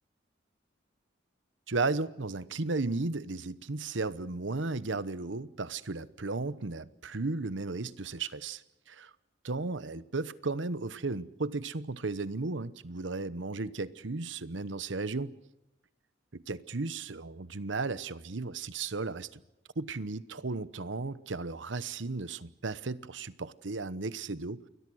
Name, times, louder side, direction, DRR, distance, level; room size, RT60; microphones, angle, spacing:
voice 1, 1.7-9.1 9.4-15.3 16.3-19.4 19.8-24.6, right 3 dB, 85° right, 1.0 m, -35 dB
28.5 x 22.0 x 6.4 m
head